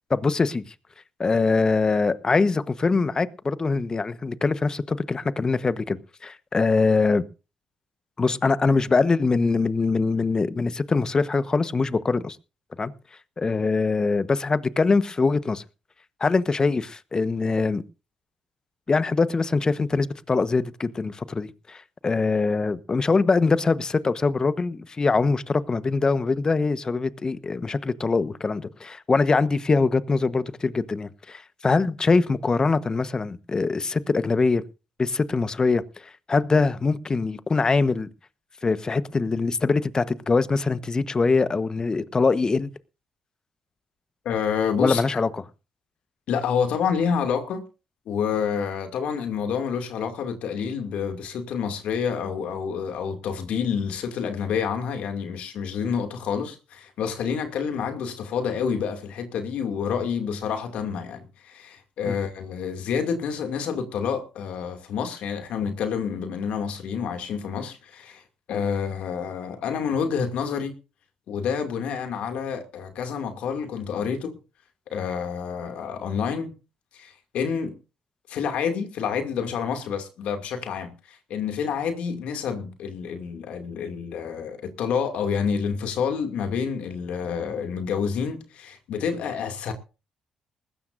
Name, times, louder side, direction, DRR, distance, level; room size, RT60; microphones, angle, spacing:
voice 1, 0.1-0.7 1.2-7.2 8.2-12.4 12.8-12.9 13.4-15.6 16.2-17.8 18.9-34.6 35.0-35.8 36.3-38.1 38.6-42.7 44.8-45.4 62.0-62.2, left 4 dB, 35° left, 1.2 m, -23 dB
voice 2, 44.2-45.0 46.3-47.6 48.1-68.2 68.5-70.7 71.3-74.4 74.9-76.5 76.9-77.7 78.3-89.7, left 6 dB, 70° left, 2.5 m, -28 dB
19.5 x 16.0 x 2.6 m
hypercardioid pair, 55°, 2 cm